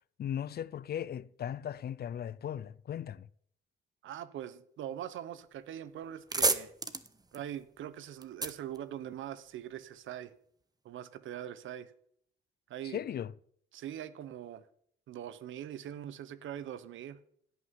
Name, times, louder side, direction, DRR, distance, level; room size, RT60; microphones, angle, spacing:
voice 1, 0.2-3.3 12.8-13.3, left 9 dB, 50° left, 0.6 m, -37 dB
voice 2, 4.0-6.7 7.3-10.3 10.8-11.9 12.7-13.0 13.7-14.6 15.1-17.2, right 11 dB, 75° right, 1.1 m, -42 dB
sound 1, 5.6-5.7 6.0-9.6, right 3 dB, 20° right, 1.3 m, -34 dB
16.5 x 6.2 x 9.6 m
cardioid pair, 90°, 20 cm